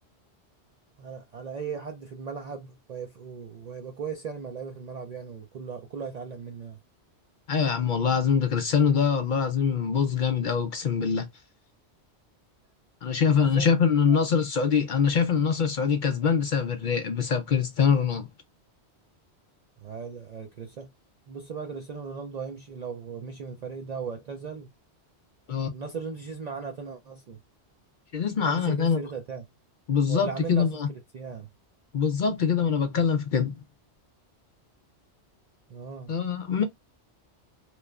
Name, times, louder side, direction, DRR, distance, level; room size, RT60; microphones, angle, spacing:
voice 1, 1.0-6.8 13.3-13.7 14.0-14.3 19.8-20.9 21.3-24.7 25.7-27.4 28.4-29.5 30.1-30.8 31.1-31.5 35.7-36.1, right 5 dB, 60° right, 0.4 m, -37 dB
voice 2, 7.5-11.3 13.0-18.3 25.5-25.7 28.1-29.0 29.9-30.9 31.9-33.5 36.1-36.6, left 6 dB, 55° left, 0.6 m, -24 dB
3.0 x 2.1 x 2.3 m
omnidirectional pair, 1.2 m